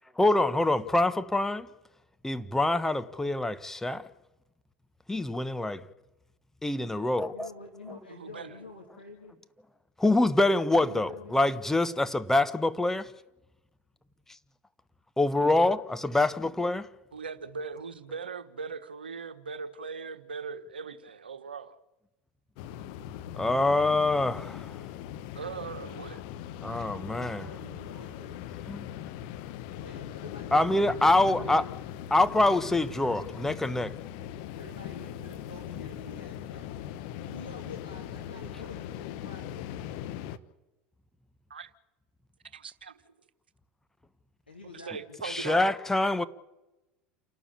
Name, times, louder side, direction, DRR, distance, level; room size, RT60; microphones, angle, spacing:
voice 1, 0.2-1.7 2.2-4.0 5.1-5.8 6.6-7.5 10.0-13.1 15.2-16.9 23.4-24.7 26.6-27.4 28.7-28.9 30.5-31.6 32.1-33.9 45.2-46.2, left 2 dB, 10° left, 1.3 m, -25 dB
voice 2, 7.3-9.4 10.3-11.4 26.9-28.6 29.8-30.6 31.1-31.7 32.2-32.6 34.5-36.7 37.2-39.8 44.5-45.6, left 3 dB, 90° left, 2.5 m, -47 dB
voice 3, 8.1-8.6 17.1-21.8 25.3-26.2 41.5-41.7 42.5-43.1 44.7-45.7, right 5 dB, 80° right, 1.3 m, -40 dB
sound 1, 22.6-40.4, left 10 dB, 60° left, 1.1 m, -40 dB
29.0 x 12.5 x 8.7 m
figure-of-eight pair, 75°, 5 cm